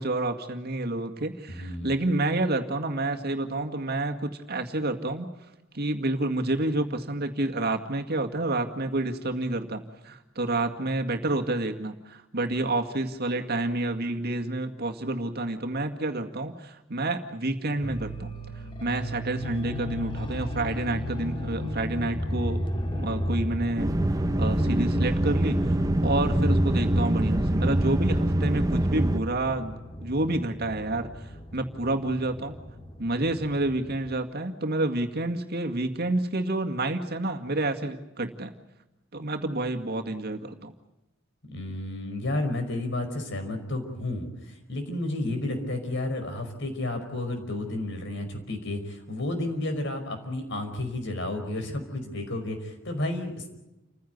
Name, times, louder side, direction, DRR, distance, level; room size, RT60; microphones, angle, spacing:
voice 1, 0.0-5.3 5.7-18.3 18.8-22.6 22.9-23.9 24.4-31.1 31.5-32.6 33.0-38.5 39.1-40.7, right 2 dB, 55° right, 4 dB, 2.0 m, -29 dB
voice 2, 1.5-1.9 41.5-53.5, left 1 dB, 65° left, 6 dB, 5.2 m, -31 dB
sound 1, 17.8-34.2, equal, 25° left, 2.5 m, -35 dB
sound 2, 23.8-29.2, right 1 dB, 20° right, 0.9 m, -24 dB
29.5 x 15.5 x 9.4 m, 0.96 s
head